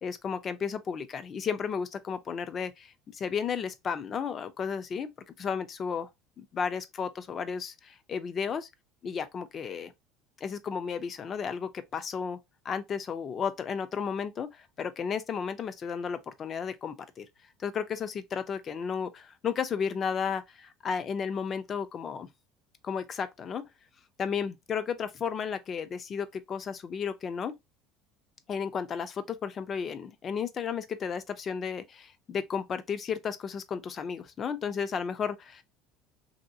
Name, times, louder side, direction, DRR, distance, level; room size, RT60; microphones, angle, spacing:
voice 1, 0.0-5.1 5.4-6.1 6.4-8.7 9.0-9.9 10.4-12.4 12.6-17.3 17.6-22.3 22.8-23.7 24.2-27.6 28.5-35.6, left 6 dB, 30° left, 0.4 m, -33 dB
3.0 x 2.7 x 2.6 m
cardioid pair, 140°, 0 cm